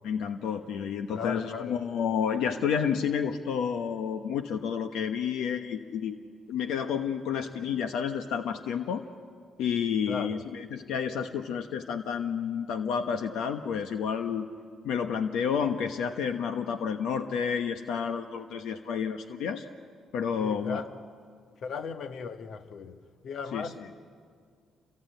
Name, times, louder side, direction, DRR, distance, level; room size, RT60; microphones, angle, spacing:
voice 1, 0.0-6.2 6.5-9.0 9.6-14.5 14.8-19.7 20.1-20.8 23.5-23.7, left 7 dB, 85° left, 1.0 m, -30 dB
voice 2, 1.1-1.8 10.1-10.4 20.4-20.9 21.6-24.0, left 5 dB, 65° left, 1.3 m, -37 dB
28.5 x 23.0 x 9.1 m
cardioid pair, 90°, 0 cm